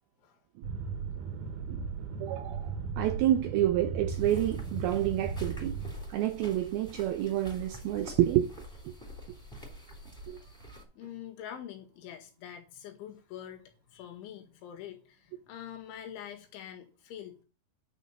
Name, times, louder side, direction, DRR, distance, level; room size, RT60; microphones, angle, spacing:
sound 1, 0.6-5.9, right 5 dB, 60° right, 2.2 m, -36 dB
voice 1, 2.2-5.8 6.1-8.5 8.9-9.0 10.3-10.4, right 13 dB, 85° right, 2.2 m, -29 dB
sound 2, 4.1-10.8, equal, ahead, 2.5 m, -46 dB
voice 2, 10.9-17.4, left 10 dB, 90° left, 4.2 m, -45 dB
10.5 x 5.3 x 7.3 m
omnidirectional pair, 5.2 m